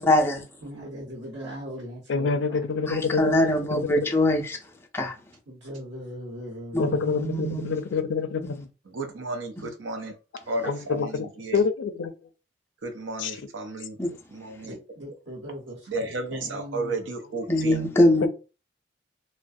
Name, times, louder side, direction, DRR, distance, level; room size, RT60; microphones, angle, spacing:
voice 1, 0.1-0.4 2.9-4.6 4.9-5.2 6.7-7.8 8.4-8.5 9.6-9.7 14.0-14.1 17.5-18.3, left 1 dB, 15° left, 0.4 m, -23 dB
voice 2, 0.6-2.6 5.5-7.1 14.6-17.0, equal, 65° right, 1.0 m, -39 dB
voice 3, 2.1-3.2 3.7-4.1 6.8-8.7 10.6-12.1 13.2-13.3 18.2-18.3, left 5 dB, 80° left, 0.4 m, -27 dB
voice 4, 8.9-10.2 10.5-11.6 12.8-14.0 14.3-14.7 15.9-17.9, right 2 dB, 85° right, 0.5 m, -33 dB
2.4 x 2.1 x 2.5 m
head